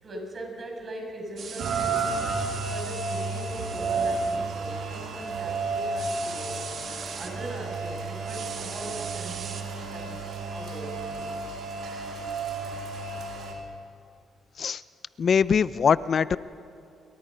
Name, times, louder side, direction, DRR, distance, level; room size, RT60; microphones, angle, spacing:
voice 1, 0.0-6.7 7.1-11.2, right 1 dB, 40° right, 1 dB, 7.1 m, -40 dB
sound 1, 1.4-4.4 5.9-7.3 8.2-9.6, right 6 dB, 55° right, 2.5 m, -40 dB
Rain, 1.6-13.5, right 3 dB, 70° right, 4.2 m, -32 dB
voice 2, 15.2-16.4, left 6 dB, 50° left, 17 dB, 0.6 m, -22 dB
28.5 x 23.0 x 5.5 m, 2.6 s
cardioid pair, 90°, 0 cm